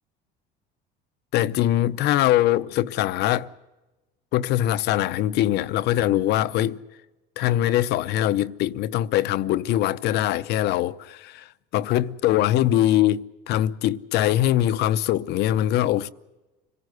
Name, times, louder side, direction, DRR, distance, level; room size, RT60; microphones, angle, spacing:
voice 1, 1.3-3.5 4.3-6.8 7.4-16.1, left 13 dB, 60° left, 0.7 m, -22 dB
26.0 x 17.5 x 7.9 m
cardioid pair, 145°, 19 cm